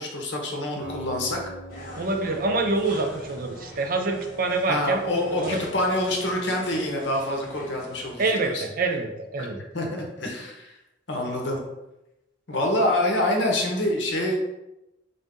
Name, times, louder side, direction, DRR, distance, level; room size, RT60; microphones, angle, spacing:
voice 1, 0.0-1.4 4.7-8.6 9.4-9.5 9.7-10.8 11.1-11.6 12.5-14.4, left 1 dB, 70° left, 0 dB, 0.9 m, -26 dB
Acoustic guitar, 0.8-4.9, equal, 70° right, 0.9 m, -44 dB
sound 1, 1.7-8.1, left 1 dB, 50° left, 1.3 m, -42 dB
voice 2, 2.0-5.6 8.2-9.6, right 3 dB, 50° right, 4 dB, 0.5 m, -26 dB
3.8 x 2.7 x 3.6 m, 0.93 s
head